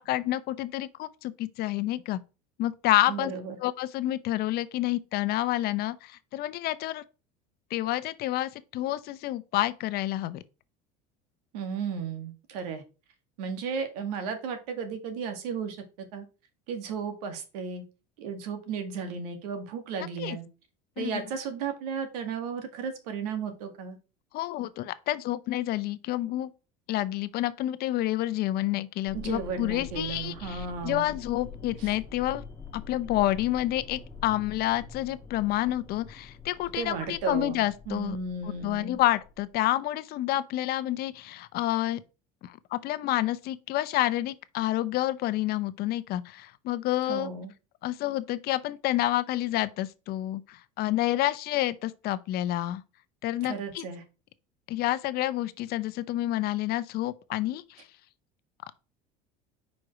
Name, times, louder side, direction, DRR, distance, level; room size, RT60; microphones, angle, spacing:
voice 1, 0.0-2.2 2.6-3.3 3.6-7.0 7.7-10.4 20.2-20.4 21.0-21.2 24.3-26.5 26.9-32.4 32.7-38.2 38.4-42.0 42.4-47.3 47.8-52.8 53.2-53.8 54.7-57.8, left 15 dB, 55° left, 0.7 m, -29 dB
voice 2, 3.1-3.6 11.5-12.8 13.4-16.3 16.7-17.8 18.2-20.5 21.0-24.0 29.1-31.1 31.8-31.9 36.8-39.0 47.0-47.5 53.4-54.0, right 6 dB, 85° right, 1.9 m, -34 dB
sound 1, 29.0-39.6, left 5 dB, 15° left, 2.1 m, -45 dB
5.3 x 4.9 x 5.8 m
supercardioid pair, 110°, 19 cm